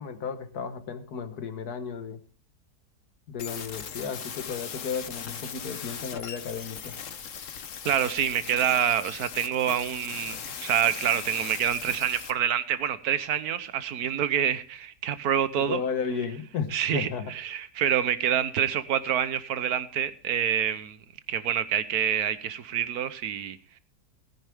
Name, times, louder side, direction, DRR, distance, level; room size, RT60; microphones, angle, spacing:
voice 1, 0.0-2.2 3.3-6.9 15.6-17.3, left 6 dB, 85° left, 1.7 m, -34 dB
sound 1, 3.4-12.3, left 7 dB, 60° left, 1.3 m, -39 dB
voice 2, 7.8-15.8 16.7-17.1 17.3-21.0 21.3-23.6, right 9 dB, 80° right, 1.4 m, -27 dB
17.0 x 10.0 x 3.5 m
omnidirectional pair, 1.6 m